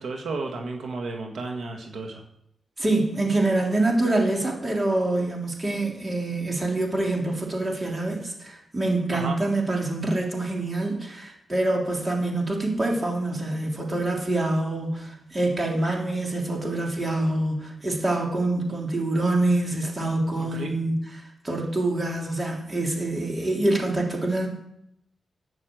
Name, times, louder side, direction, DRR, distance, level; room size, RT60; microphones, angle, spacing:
voice 1, 0.0-2.2 9.1-9.4 20.4-20.7, right 3 dB, 80° right, 2 dB, 1.7 m, -33 dB
voice 2, 2.8-24.5, right 2 dB, 30° right, 0 dB, 3.3 m, -26 dB
11.5 x 6.5 x 7.8 m, 0.77 s
cardioid pair, 95°, 0 cm